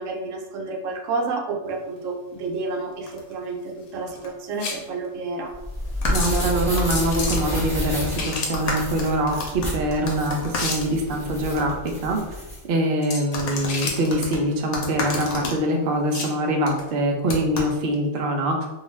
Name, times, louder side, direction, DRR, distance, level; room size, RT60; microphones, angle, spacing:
voice 1, 0.0-5.5, right 3 dB, 70° right, 1 dB, 0.8 m, -30 dB
sound 1, 1.7-16.4, left 3 dB, 90° left, 1.1 m, -35 dB
sound 2, 3.1-3.3 4.1-4.3 4.5-4.6 5.9-11.6 11.9-12.0 13.3-15.6 16.7-16.9 17.3-17.7, left 2 dB, 65° left, 0.9 m, -32 dB
sound 3, 5.5-12.6, left 1 dB, 5° left, 0.8 m, -30 dB
voice 2, 6.1-12.2 12.7-18.7, right 1 dB, 85° right, 2 dB, 0.4 m, -24 dB
2.3 x 2.3 x 3.1 m, 1.1 s
omnidirectional pair, 1.5 m